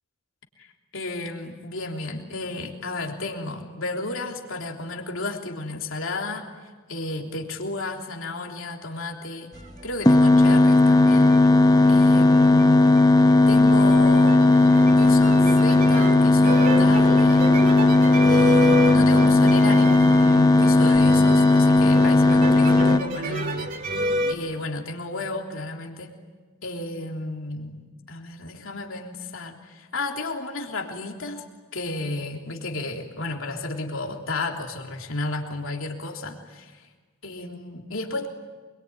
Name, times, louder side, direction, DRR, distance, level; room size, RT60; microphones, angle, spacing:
voice 1, 0.9-6.4 6.9-9.5 9.8-11.4 11.9-13.0 13.5-17.5 18.3-26.1 26.6-31.4 31.7-36.8 37.2-38.3, left 2 dB, 65° left, 1 dB, 3.4 m, -33 dB
sound 1, 9.6-10.5 10.8-24.3, equal, 40° right, 2.5 m, -30 dB
sound 2, 10.1-23.0, left 2 dB, 20° left, 0.9 m, -16 dB
26.5 x 23.0 x 9.6 m, 1.4 s
head